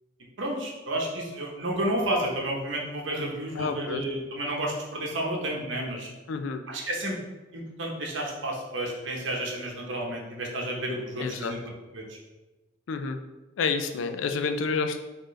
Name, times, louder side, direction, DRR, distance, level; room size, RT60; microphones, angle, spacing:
voice 1, 0.4-6.1 6.7-7.2 7.5-11.6 11.9-12.0, right 1 dB, 75° right, -1 dB, 0.9 m, -31 dB
voice 2, 3.6-4.0 6.3-6.6 11.2-11.5 12.9-13.2 13.6-15.0, left 5 dB, 85° left, 7 dB, 0.4 m, -29 dB
4.3 x 3.1 x 3.1 m, 1.2 s
head